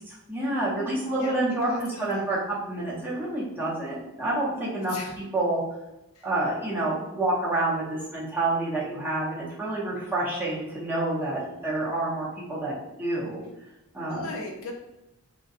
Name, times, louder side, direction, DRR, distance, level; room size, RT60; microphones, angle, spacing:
voice 1, 0.1-4.9 5.3-5.6 6.2-12.7 13.0-13.4 13.9-14.3, right 2 dB, 10° right, -8 dB, 0.7 m, -28 dB
voice 2, 1.7-2.3 4.9-5.1 6.2-6.3 11.4-11.7 14.1-14.7, left 2 dB, 70° left, 2 dB, 0.5 m, -39 dB
2.6 x 2.1 x 2.4 m, 0.92 s
head